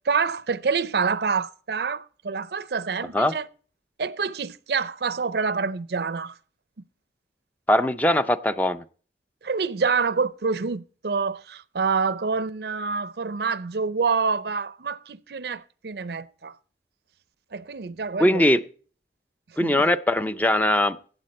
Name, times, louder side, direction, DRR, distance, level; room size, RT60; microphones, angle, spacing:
voice 1, 0.0-3.5 4.0-6.3 9.4-16.5 17.5-18.4 19.6-19.8, right 5 dB, 60° right, 0.5 m, -27 dB
voice 2, 7.7-8.8 18.2-18.6 19.6-21.0, left 1 dB, 10° left, 0.4 m, -21 dB
15.5 x 9.0 x 4.1 m
head